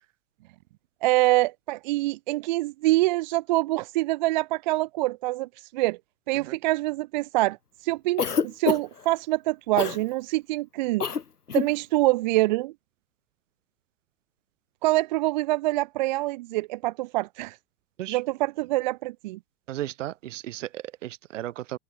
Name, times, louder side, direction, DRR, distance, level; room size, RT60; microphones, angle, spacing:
voice 1, 1.0-6.0 6.3-7.6 7.8-11.1 11.5-12.7 14.8-17.6 18.1-19.4, right 19 dB, 30° right, 0.5 m, -25 dB
Cough, 8.2-9.0 9.8-10.0 11.0-11.2 11.5-11.7, left 6 dB, 90° left, 0.7 m, -26 dB
voice 2, 19.7-21.8, right 14 dB, 55° right, 2.3 m, -35 dB
figure-of-eight pair, 95°, 45 cm